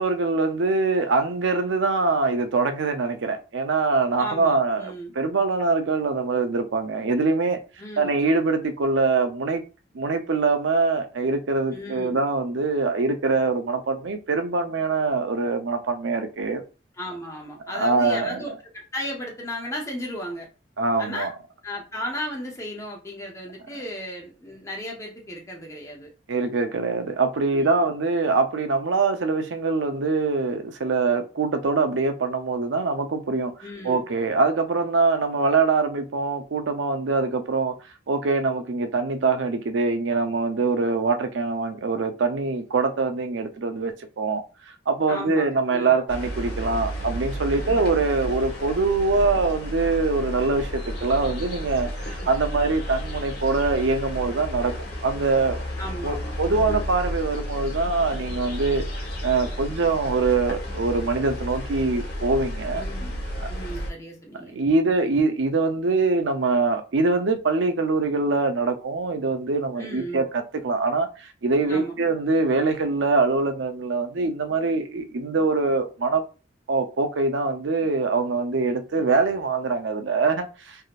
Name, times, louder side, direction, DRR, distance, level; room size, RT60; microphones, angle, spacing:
voice 1, 0.0-7.6 8.0-9.6 9.9-16.6 17.7-18.4 20.8-21.3 26.3-33.5 33.8-37.7 38.1-44.4 44.9-54.7 55.0-55.6 56.0-58.8 59.2-62.8 63.4-63.5 64.4-76.2 76.7-80.8, right 3 dB, 85° right, 0.6 m, -23 dB
voice 2, 4.2-5.1 7.8-8.1 11.7-12.2 17.0-20.5 21.0-21.3 21.6-26.1 27.5-27.9 33.6-34.0 45.1-46.0 47.5-48.0 52.2-52.6 55.8-56.8 62.7-63.2 63.5-64.6 69.8-70.2 71.7-72.1, equal, 15° left, 0.6 m, -35 dB
sound 1, 46.1-63.9, equal, 60° left, 1.2 m, -32 dB
3.5 x 2.6 x 2.4 m
head